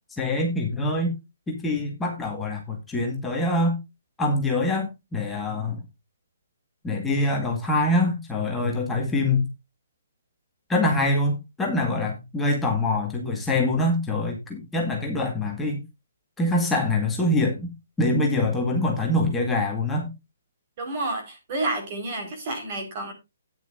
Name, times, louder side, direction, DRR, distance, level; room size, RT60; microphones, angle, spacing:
voice 1, 0.1-1.1 1.5-3.8 4.2-5.8 6.8-9.5 10.7-15.8 16.4-17.7 18.0-20.1, left 2 dB, 10° left, 1.9 m, -24 dB
voice 2, 20.8-23.1, right 2 dB, 40° right, 4.5 m, -30 dB
13.0 x 9.7 x 2.6 m
figure-of-eight pair, 130°, 0 cm